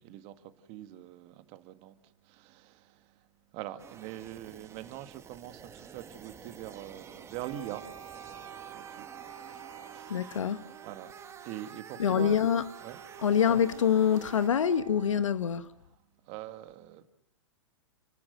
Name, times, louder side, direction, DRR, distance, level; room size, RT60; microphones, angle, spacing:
voice 1, 0.0-3.3 3.5-8.5 8.7-9.6 9.9-10.3 10.8-11.1 11.4-12.4 12.8-13.0 16.3-17.1, right 13 dB, 40° right, 1.9 m, -44 dB
sound 1, 3.8-14.5, right 7 dB, 15° right, 1.4 m, -50 dB
Wind instrument woodwind instrument, 7.4-15.4, right 9 dB, 75° right, 1.8 m, -49 dB
voice 2, 10.1-10.6 12.0-12.7 13.2-15.7, left 8 dB, 75° left, 1.3 m, -25 dB
29.5 x 13.5 x 7.9 m
hypercardioid pair, 115°, 16 cm